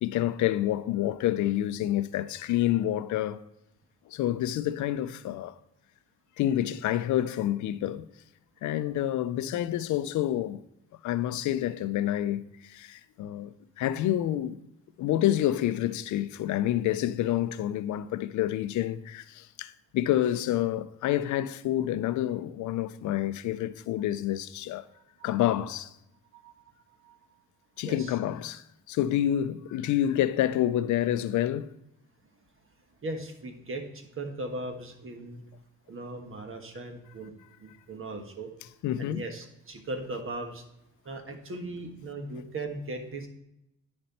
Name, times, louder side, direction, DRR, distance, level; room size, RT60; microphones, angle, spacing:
voice 1, 0.0-3.4 4.1-5.6 6.4-8.1 8.6-10.6 11.0-14.6 15.0-24.9 25.2-25.9 27.8-31.7 38.8-39.2, left 12 dB, 70° left, 0.5 m, -28 dB
voice 2, 33.0-35.4 35.9-37.3 37.6-38.5 39.0-40.6 41.0-43.3, right 2 dB, 45° right, 1.4 m, -38 dB
10.0 x 4.4 x 4.2 m
cardioid pair, 90°, 30 cm